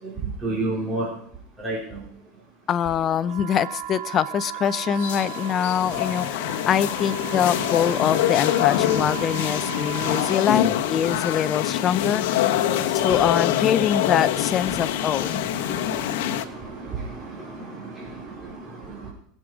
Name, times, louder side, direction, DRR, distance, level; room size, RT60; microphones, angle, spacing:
voice 1, 0.0-1.1 1.6-2.0 7.5-7.6 7.9-8.0 9.9-10.1 11.0-11.2 12.0-12.1 12.6-13.3 14.6-14.8 15.1-19.1, right 3 dB, 15° right, -6 dB, 4.5 m, -33 dB
voice 2, 2.7-12.4 12.9-15.4, left 9 dB, 35° left, 15 dB, 0.7 m, -24 dB
sound 1, 3.2-10.5, right 12 dB, 75° right, 1.6 m, -36 dB
sound 2, 5.0-16.4, left 11 dB, 70° left, 1.1 m, -25 dB
21.0 x 7.8 x 5.0 m, 0.64 s
supercardioid pair, 115°, 0 cm